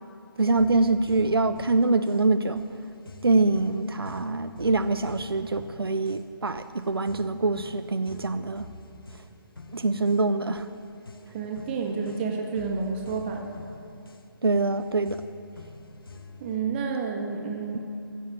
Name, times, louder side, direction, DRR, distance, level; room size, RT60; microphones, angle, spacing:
voice 1, 0.4-2.6 3.2-8.7 9.7-10.7 14.4-15.2, right 3 dB, 85° right, 10 dB, 0.6 m, -24 dB
sound 1, 0.6-16.6, left 3 dB, 75° left, 1.0 m, -47 dB
voice 2, 11.3-13.6 16.4-17.8, right 5 dB, 25° right, 1 dB, 1.5 m, -30 dB
16.0 x 7.2 x 7.3 m, 2.5 s
figure-of-eight pair, 145°, 12 cm